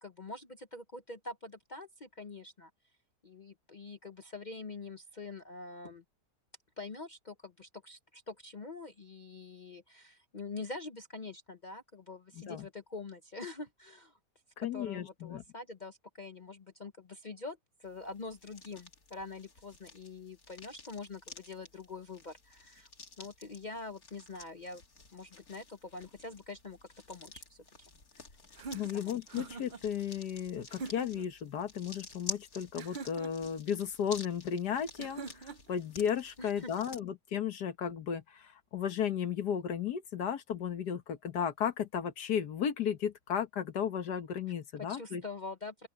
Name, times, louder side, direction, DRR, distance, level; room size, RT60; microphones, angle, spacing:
voice 1, 0.0-2.7 3.2-6.0 6.8-14.2 14.6-22.9 23.2-24.8 25.1-26.8 27.1-27.6 28.1-28.2 28.9-29.2 36.4-36.7 44.8-45.9, left 3 dB, 35° left, 0.8 m, -45 dB
voice 2, 12.3-12.7 14.6-15.4 28.7-45.2, left 8 dB, 80° left, 1.8 m, -34 dB
sound 1, 17.8-37.0, left 4 dB, 60° left, 3.1 m, -50 dB
sound 2, 28.5-29.8 30.7-31.3 32.8-33.5 35.0-35.8, right 4 dB, 60° right, 0.5 m, -44 dB
open air
omnidirectional pair, 1.7 m